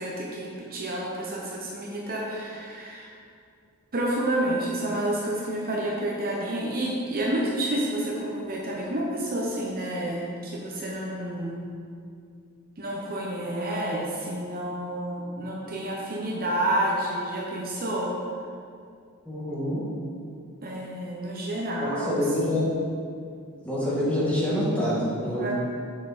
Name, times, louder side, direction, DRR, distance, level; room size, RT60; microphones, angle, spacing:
voice 1, 0.0-3.1 3.9-11.6 12.8-18.1 20.6-22.6 25.4-25.5, right 1 dB, 40° right, -3 dB, 1.0 m, -29 dB
voice 2, 19.3-19.8 21.8-22.6 23.6-25.5, left 1 dB, 5° left, -8 dB, 1.9 m, -26 dB
7.3 x 6.2 x 4.2 m, 2.3 s
head